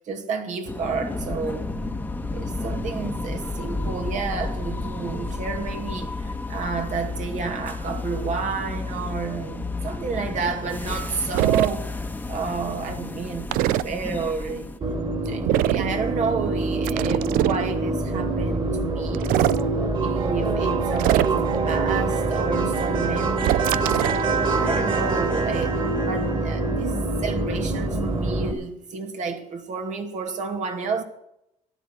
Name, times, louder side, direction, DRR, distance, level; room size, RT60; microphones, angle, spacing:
voice 1, 0.1-1.8 2.3-11.9 12.3-14.7 15.2-19.5 20.0-24.0 24.5-25.7 26.0-31.0, right 5 dB, 55° right, 2.3 m, -30 dB
sound 1, 0.7-14.8, left 2 dB, 10° left, 1.3 m, -32 dB
sound 2, 11.3-11.7 13.5-13.8 15.5-15.9 16.8-17.6 19.1-19.6 21.0-21.6 23.4-24.2, right 16 dB, 85° right, 0.4 m, -22 dB
sound 3, 14.8-28.5, right 3 dB, 35° right, 3.1 m, -25 dB
15.0 x 11.0 x 5.9 m
cardioid pair, 90°, 14 cm